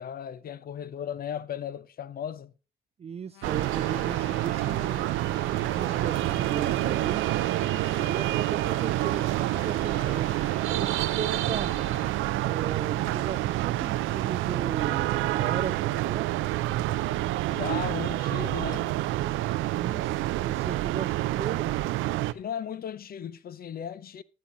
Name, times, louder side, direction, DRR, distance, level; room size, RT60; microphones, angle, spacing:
voice 1, 0.0-2.5 17.5-18.9 22.3-24.2, left 9 dB, 50° left, 0.6 m, -36 dB
voice 2, 3.0-5.1 5.4-7.3 8.0-10.3 10.6-11.7 12.4-16.4 19.7-21.7, right 7 dB, 30° right, 0.4 m, -36 dB
sound 1, 3.3-12.1, left 12 dB, 85° left, 0.6 m, -47 dB
sound 2, 3.4-22.3, right 16 dB, 90° right, 0.5 m, -28 dB
10.0 x 8.6 x 3.8 m
cardioid pair, 90°, 20 cm